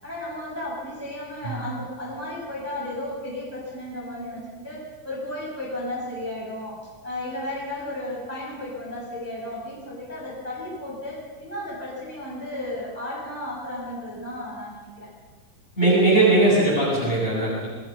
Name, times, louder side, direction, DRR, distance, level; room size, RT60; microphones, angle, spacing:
voice 1, 0.0-6.8 7.0-15.1, left 1 dB, 5° right, -6 dB, 7.3 m, -34 dB
voice 2, 15.8-17.7, right 2 dB, 15° left, -5 dB, 7.8 m, -19 dB
28.0 x 20.5 x 5.8 m, 1.3 s
omnidirectional pair, 4.5 m